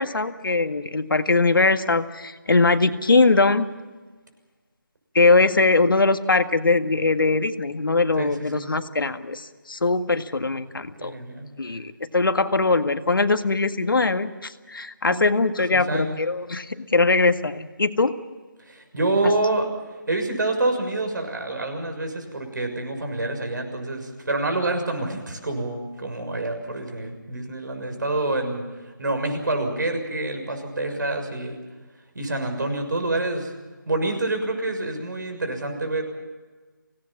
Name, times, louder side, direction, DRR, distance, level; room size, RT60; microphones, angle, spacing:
voice 1, 0.0-3.7 5.1-11.1 11.6-18.1, left 3 dB, 80° left, 8 dB, 1.8 m, -21 dB
voice 2, 8.1-8.7 11.0-11.5 15.1-15.3 15.7-16.2 18.6-19.7 20.1-31.6 32.1-33.5 33.9-36.0, right 2 dB, 65° right, 5 dB, 6.6 m, -27 dB
25.0 x 18.0 x 7.4 m, 1.3 s
figure-of-eight pair, 170°, 11 cm